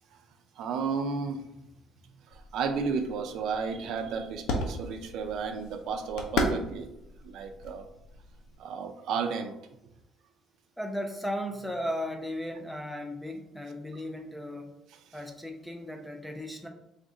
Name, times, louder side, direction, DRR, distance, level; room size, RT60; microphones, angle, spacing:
voice 1, 0.6-1.4 2.3-6.9 7.2-7.9 8.6-9.6, right 5 dB, 65° right, 6 dB, 0.4 m, -33 dB
sound 1, 2.3-8.6, left 2 dB, 75° left, 0.7 m, -36 dB
voice 2, 10.8-14.7 15.1-16.7, equal, ahead, 3 dB, 0.4 m, -36 dB
3.5 x 2.5 x 4.1 m, 0.87 s
cardioid pair, 150°, 0 cm